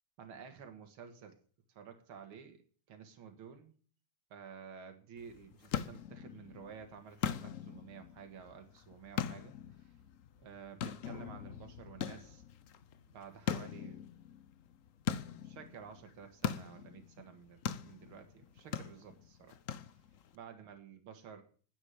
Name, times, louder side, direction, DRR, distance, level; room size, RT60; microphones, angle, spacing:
voice 1, 0.2-1.4 1.7-2.6 2.9-3.7 4.3-9.9 10.4-12.4 13.1-14.0 15.4-19.6 20.3-21.4, right 7 dB, 70° right, 6 dB, 2.5 m, -52 dB
sound 1, 5.2-20.4, left 8 dB, 80° left, 0.7 m, -42 dB
10.0 x 8.6 x 9.2 m, 0.43 s
omnidirectional pair, 2.4 m